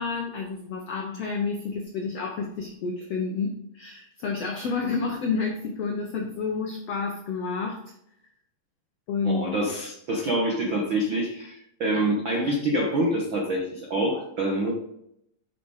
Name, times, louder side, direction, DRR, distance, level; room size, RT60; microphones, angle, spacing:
voice 1, 0.0-7.8 9.1-9.4, left 4 dB, 80° left, 2 dB, 1.4 m, -29 dB
voice 2, 9.2-14.7, right 1 dB, 75° right, 0 dB, 1.1 m, -26 dB
9.1 x 5.9 x 4.8 m, 0.76 s
omnidirectional pair, 4.2 m